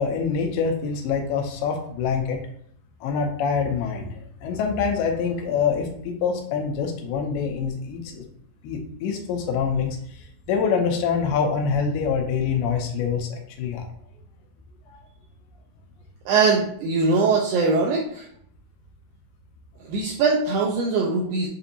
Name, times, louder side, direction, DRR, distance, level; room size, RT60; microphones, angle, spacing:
voice 1, 0.0-2.4 3.0-8.2 8.6-13.9 14.9-15.0, left 6 dB, 90° left, 2 dB, 2.6 m, -25 dB
voice 2, 16.3-18.3 19.8-21.5, right 4 dB, 80° right, -2 dB, 2.2 m, -21 dB
6.8 x 2.6 x 2.7 m, 0.65 s
omnidirectional pair, 4.4 m